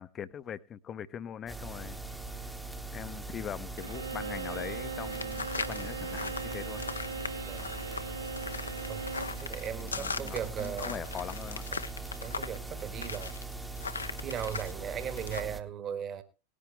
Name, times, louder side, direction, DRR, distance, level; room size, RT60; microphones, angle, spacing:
voice 1, 0.0-2.0 2.9-6.9 9.8-11.6, left 9 dB, 25° left, 0.7 m, -41 dB
sound 1, 1.5-15.6, right 3 dB, 5° right, 1.0 m, -41 dB
Bowed string instrument, 3.8-9.4, right 4 dB, 75° right, 0.9 m, -39 dB
sound 2, 5.1-14.7 15.0-15.4, left 4 dB, 75° left, 0.8 m, -39 dB
voice 2, 9.3-11.1 11.7-11.8 12.2-13.4 14.2-16.2, right 9 dB, 30° right, 1.5 m, -38 dB
19.0 x 10.0 x 3.3 m
figure-of-eight pair, 90°, 0 cm